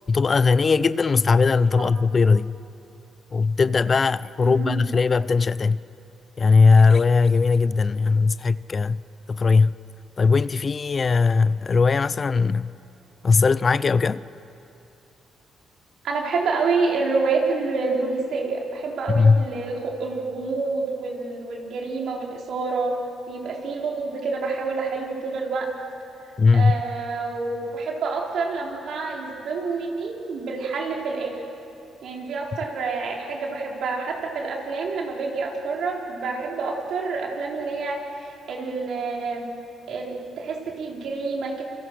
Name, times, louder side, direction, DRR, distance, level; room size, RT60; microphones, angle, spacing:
voice 1, 0.1-2.5 3.3-5.8 6.4-9.0 9.3-9.7 10.2-12.7 13.2-14.3 19.1-19.4 26.4-26.8, left 4 dB, 35° left, 0.5 m, -19 dB
voice 2, 4.4-4.9 16.0-22.9 23.3-25.7 26.5-31.3 32.0-39.5 39.9-41.6, right 4 dB, 70° right, 4.4 m, -28 dB
28.0 x 25.5 x 6.3 m
cardioid pair, 90°, 0 cm